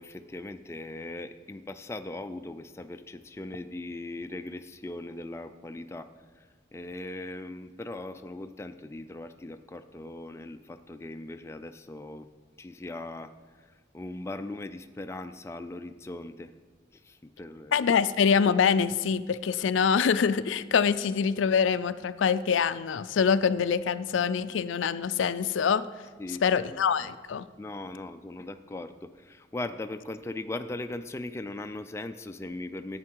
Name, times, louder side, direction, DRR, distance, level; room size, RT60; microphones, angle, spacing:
voice 1, 0.0-6.1 6.4-12.3 12.6-13.3 13.6-16.5 16.9-17.8 26.2-27.1 27.6-33.0, left 2 dB, 15° left, 8 dB, 0.3 m, -39 dB
voice 2, 17.7-25.9 26.4-27.5, left 6 dB, 90° left, 14 dB, 0.4 m, -25 dB
11.0 x 8.6 x 4.6 m, 1.5 s
head